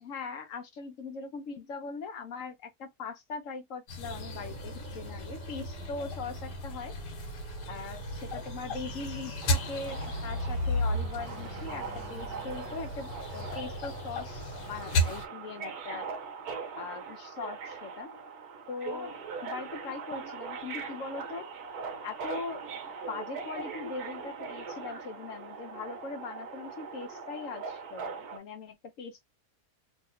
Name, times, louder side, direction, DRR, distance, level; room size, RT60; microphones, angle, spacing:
voice 1, 0.0-6.9 7.7-16.1 16.8-18.1 18.7-19.1 19.4-21.5 22.0-22.6 23.1-29.2, left 4 dB, 60° left, 1.0 m, -40 dB
sound 1, 3.9-15.3, left 1 dB, 80° left, 1.5 m, -34 dB
sound 2, 4.0-12.8, right 9 dB, 85° right, 1.2 m, -48 dB
Subway metro underground, 9.4-28.4, right 5 dB, 70° right, 1.3 m, -41 dB
3.3 x 2.8 x 2.5 m
omnidirectional pair, 1.8 m